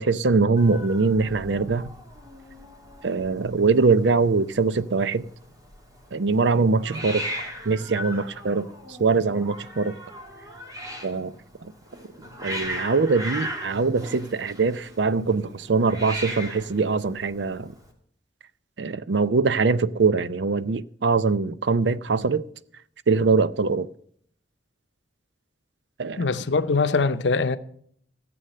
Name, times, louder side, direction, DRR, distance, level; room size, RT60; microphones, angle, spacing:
voice 1, 0.0-1.9 3.0-5.3 6.1-7.2 7.7-8.7 9.0-9.9 11.0-11.3 11.6-11.7 12.4-17.7 18.8-22.4 23.1-23.9 26.0-26.3, right 4 dB, 75° right, 0.6 m, -22 dB
Hiss, 0.6-17.9, equal, 20° right, 2.3 m, -38 dB
voice 2, 26.2-27.6, left 4 dB, 80° left, 0.7 m, -22 dB
14.5 x 7.9 x 6.6 m
head